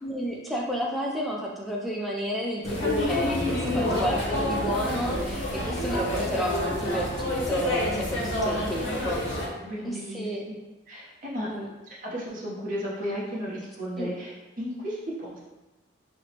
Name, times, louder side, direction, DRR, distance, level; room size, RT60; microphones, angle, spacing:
voice 1, 0.0-9.2 9.8-10.4 11.5-11.7 14.0-14.1, equal, ahead, -3 dB, 0.3 m, -31 dB
sound 1, 2.6-9.5, left 1 dB, 70° left, 0.7 m, -28 dB
voice 2, 3.7-4.1 5.5-5.7 8.2-8.4 8.8-9.0 9.6-10.3 10.9-11.5 11.9-14.3 14.6-15.4, equal, 40° right, -6 dB, 0.7 m, -34 dB
4.3 x 2.0 x 2.8 m, 1.1 s
head